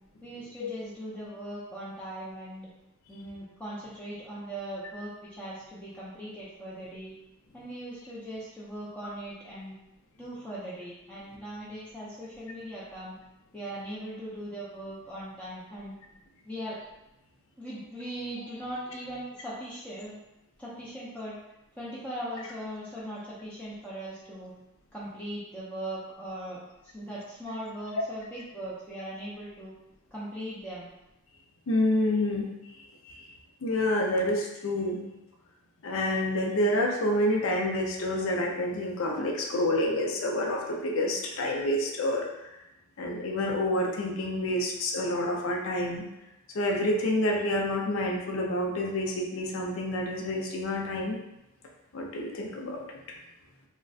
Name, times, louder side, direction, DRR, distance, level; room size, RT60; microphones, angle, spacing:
voice 1, 0.2-2.7 3.1-7.2 7.5-9.7 10.2-13.1 13.5-15.9 16.5-16.8 17.6-20.2 20.6-21.4 21.8-24.5 24.9-29.7 30.1-30.9, right 1 dB, 5° left, -9 dB, 0.5 m, -39 dB
voice 2, 31.7-32.5 33.0-33.3 33.6-35.0 35.8-42.3 43.0-46.0 46.5-51.2 51.9-52.8, left 1 dB, 65° left, 0 dB, 0.5 m, -28 dB
3.8 x 2.1 x 2.3 m, 0.91 s
head